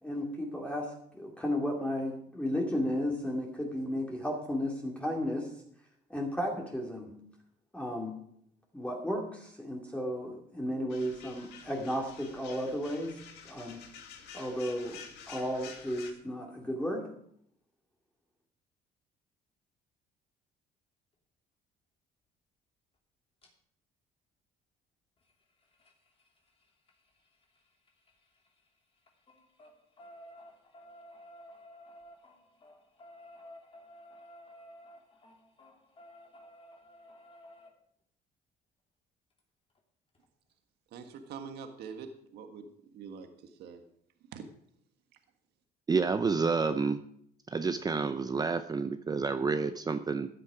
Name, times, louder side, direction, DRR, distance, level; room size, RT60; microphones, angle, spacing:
voice 1, 0.0-5.5 6.1-7.1 7.7-8.2 8.7-13.2 13.4-13.8 14.3-17.1, equal, 5° left, -1 dB, 2.4 m, -34 dB
sound 1, 10.9-16.1, left 7 dB, 90° left, 2.0 m, -49 dB
sound 2, 23.4-23.5 25.2-28.7 29.0-37.7 39.4-39.5 39.7-39.8 40.1-40.2, equal, 35° left, 2.9 m, -54 dB
voice 2, 40.9-42.7 42.9-43.8 44.3-44.5, right 6 dB, 75° right, 6 dB, 1.6 m, -44 dB
voice 3, 45.9-47.0 47.5-50.3, right 4 dB, 25° right, 10 dB, 0.6 m, -29 dB
14.0 x 10.0 x 5.0 m, 0.69 s
cardioid pair, 110°, 17 cm